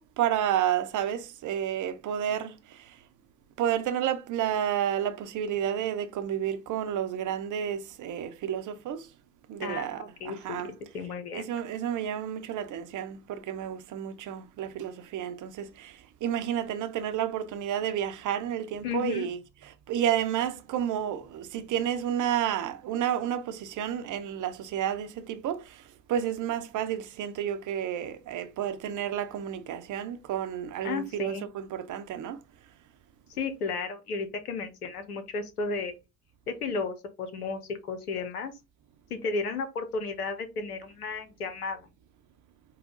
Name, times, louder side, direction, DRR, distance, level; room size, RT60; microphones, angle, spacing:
voice 1, 0.0-2.6 3.6-9.0 9.5-10.7 11.3-15.9 16.2-19.4 19.9-25.6 26.1-32.4, right 10 dB, 45° right, 0.7 m, -31 dB
voice 2, 9.6-10.6 10.9-11.5 18.8-19.3 30.8-31.5 33.3-36.0 36.5-37.6 37.9-38.5 39.1-41.9, left 4 dB, 85° left, 0.8 m, -33 dB
5.3 x 2.1 x 3.8 m
figure-of-eight pair, 55°, 45 cm